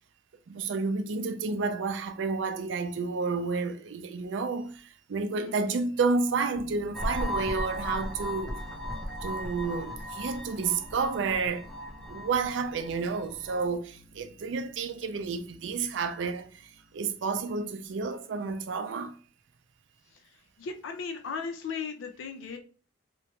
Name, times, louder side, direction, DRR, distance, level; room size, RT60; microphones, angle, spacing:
voice 1, 0.5-8.6 9.2-11.7 12.1-19.2, right 4 dB, 70° right, 0.4 m, -30 dB
voice 2, 5.4-5.8 20.1-22.6, left 5 dB, 85° left, 0.4 m, -37 dB
sound 1, 6.5-18.0, left 3 dB, 50° right, 0.9 m, -52 dB
sound 2, 6.9-13.7, left 1 dB, ahead, 0.4 m, -37 dB
2.9 x 2.2 x 2.8 m
head